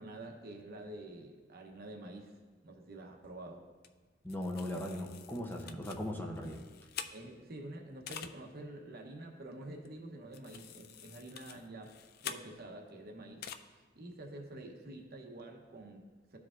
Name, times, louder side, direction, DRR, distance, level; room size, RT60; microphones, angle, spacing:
voice 1, 0.0-2.3 2.6-3.7 7.1-12.0 12.2-13.5 13.7-16.4, right 1 dB, 55° right, 2 dB, 0.9 m, -48 dB
sound 1, 3.8-3.9 4.3-7.6 8.1-8.3 9.9-10.0 10.3-12.9 13.4-13.6, left 8 dB, 55° left, 0.3 m, -47 dB
voice 2, 4.2-6.6, left 1 dB, 10° left, 1 dB, 0.6 m, -38 dB
13.0 x 4.7 x 2.4 m, 1.4 s
head